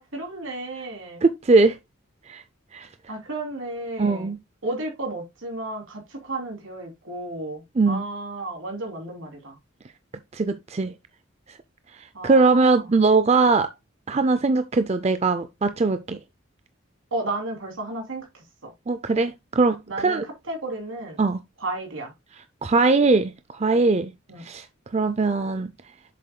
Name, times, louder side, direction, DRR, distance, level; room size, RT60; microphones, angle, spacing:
voice 1, 0.0-1.2 3.1-4.3 4.6-9.5 12.1-12.9 17.1-18.7 19.9-20.2 20.5-21.2 21.6-22.1 24.3-24.5, right 2 dB, 80° right, 3.1 m, -33 dB
voice 2, 1.2-1.8 2.3-2.4 2.7-2.9 4.0-4.4 7.8-8.0 10.3-10.9 12.2-13.7 14.1-16.2 18.9-20.2 21.2-21.4 22.6-24.1 24.4-24.6 24.9-25.7, right 3 dB, 30° right, 0.5 m, -20 dB
7.6 x 7.3 x 2.3 m
head